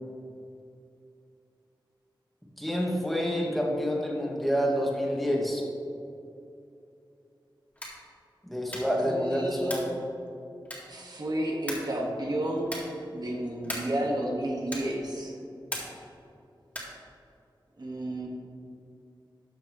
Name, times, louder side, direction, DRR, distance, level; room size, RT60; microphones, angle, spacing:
voice 1, 2.6-5.6 8.4-9.9, equal, ahead, -3 dB, 1.7 m, -28 dB
sound 1, 7.7-8.1 8.7-9.0 9.6-10.0 10.7-11.1 11.7-12.0 12.6-13.0 13.6-14.0 14.7-15.0 15.7-16.1 16.7-17.0, equal, 15° left, 2.1 m, -38 dB
voice 2, 9.0-9.9 10.9-12.8 13.1-15.3 17.8-18.3, right 1 dB, 55° right, -1 dB, 1.5 m, -31 dB
12.5 x 6.3 x 3.1 m, 2.6 s
wide cardioid pair, 80°, 8 cm